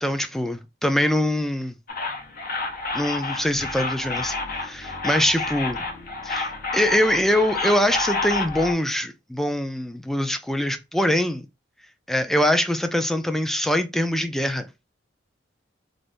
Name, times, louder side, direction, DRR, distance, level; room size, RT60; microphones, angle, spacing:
voice 1, 0.0-1.7 2.9-5.8 6.2-11.4 12.1-14.7, left 1 dB, ahead, 0.3 m, -23 dB
sound 1, 1.9-8.7, left 3 dB, 50° left, 0.7 m, -29 dB
2.5 x 2.5 x 3.5 m
head